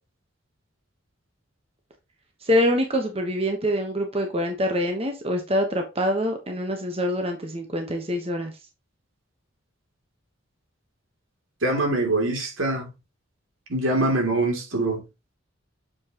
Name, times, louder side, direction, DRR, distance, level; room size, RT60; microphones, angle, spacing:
voice 1, 2.4-8.5, equal, 30° right, 1.2 m, -25 dB
voice 2, 11.6-12.9 13.7-15.0, right 2 dB, 80° right, 3.0 m, -24 dB
7.2 x 6.3 x 3.0 m
head